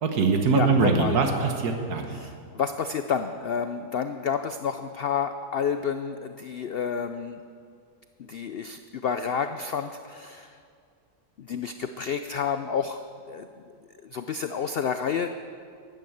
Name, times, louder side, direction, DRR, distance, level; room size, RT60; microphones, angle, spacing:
voice 1, 0.0-2.2, right 4 dB, 80° right, 4 dB, 1.7 m, -23 dB
voice 2, 0.5-1.2 2.1-7.4 8.2-10.6 11.4-13.0 13.3-13.5 14.0-15.3, left 6 dB, 80° left, 9 dB, 0.5 m, -30 dB
12.0 x 11.5 x 7.9 m, 2.3 s
omnidirectional pair, 1.6 m